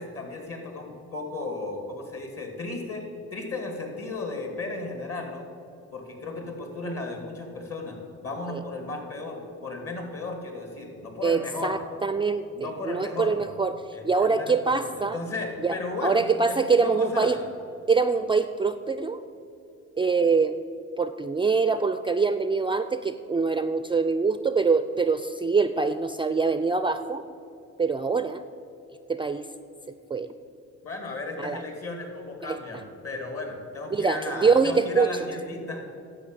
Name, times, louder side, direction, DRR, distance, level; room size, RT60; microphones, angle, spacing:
voice 1, 0.0-3.0 3.3-5.5 5.9-8.0 8.2-11.8 12.5-13.4 13.9-17.5 30.8-35.8, left 2 dB, 50° left, 3 dB, 2.5 m, -35 dB
voice 2, 11.2-12.5 12.8-15.2 15.6-15.8 16.0-17.4 17.9-19.2 20.0-20.6 21.0-27.2 27.8-28.4 29.1-29.5 30.1-30.3 31.4-31.6 32.4-32.6 33.9-35.1, right 4 dB, 15° right, 11 dB, 0.3 m, -24 dB
10.5 x 7.4 x 7.5 m, 2.7 s
cardioid pair, 90°, 30 cm